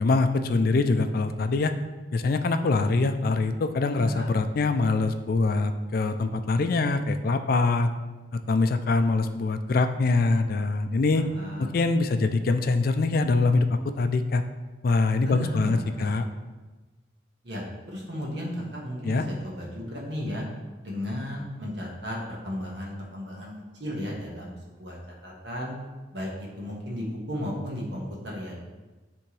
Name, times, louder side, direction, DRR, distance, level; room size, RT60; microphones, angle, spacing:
voice 1, 0.0-1.7 2.1-7.9 8.5-11.2 11.6-14.4 14.8-16.3 19.0-19.2, left 3 dB, 55° left, 9 dB, 0.4 m, -24 dB
voice 2, 3.9-4.3 11.1-11.8 15.2-16.1 17.4-20.5 20.8-23.5 23.8-24.5 24.8-25.0 25.2-25.8 26.1-28.6, equal, 65° right, -3 dB, 1.6 m, -34 dB
10.0 x 3.5 x 3.2 m, 1.2 s
head